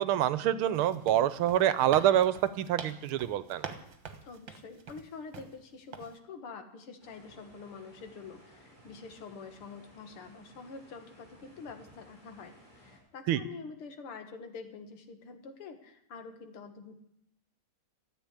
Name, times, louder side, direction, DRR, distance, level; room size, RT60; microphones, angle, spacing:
voice 1, 0.0-3.6 13.3-13.4, right 11 dB, 80° right, 15 dB, 1.6 m, -26 dB
sound 1, 0.7-5.6 5.9-6.2, right 6 dB, 65° right, 1.9 m, -45 dB
voice 2, 4.2-17.0, left 5 dB, 80° left, 7 dB, 2.5 m, -46 dB
sound 2, 7.0-13.0, equal, 20° right, 6.3 m, -58 dB
14.0 x 8.6 x 9.8 m, 0.75 s
omnidirectional pair, 2.4 m